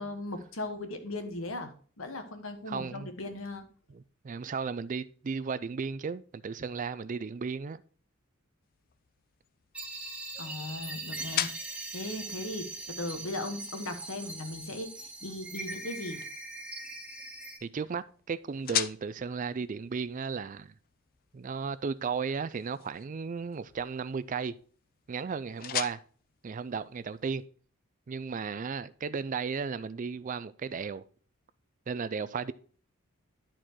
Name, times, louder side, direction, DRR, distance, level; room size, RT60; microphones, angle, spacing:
voice 1, 0.0-3.6 10.4-14.9 15.2-16.2, left 2 dB, 75° left, 1.4 m, -38 dB
voice 2, 2.7-3.1 3.9-7.8 17.6-20.7 21.3-24.6 25.1-26.0 26.4-27.4 28.1-31.0 31.9-32.5, right 5 dB, 40° right, 0.4 m, -35 dB
sound 1, 8.6-27.5, left 11 dB, 45° left, 0.4 m, -42 dB
sound 2, 9.7-17.6, right 2 dB, 5° right, 1.2 m, -41 dB
11.0 x 4.4 x 4.6 m
head